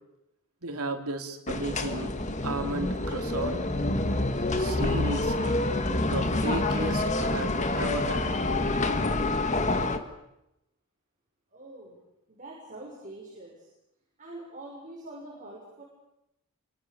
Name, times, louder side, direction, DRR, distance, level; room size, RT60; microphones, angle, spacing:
voice 1, 0.6-2.1 2.4-3.6 4.6-5.6 6.0-8.3, right 2 dB, 80° right, 5 dB, 3.5 m, -34 dB
sound 1, 1.5-10.0, left 2 dB, 35° left, 1.9 m, -27 dB
voice 2, 11.5-12.0 12.3-13.7 14.2-15.8, right 1 dB, 35° right, -3 dB, 6.6 m, -44 dB
29.0 x 25.5 x 7.0 m, 0.87 s
head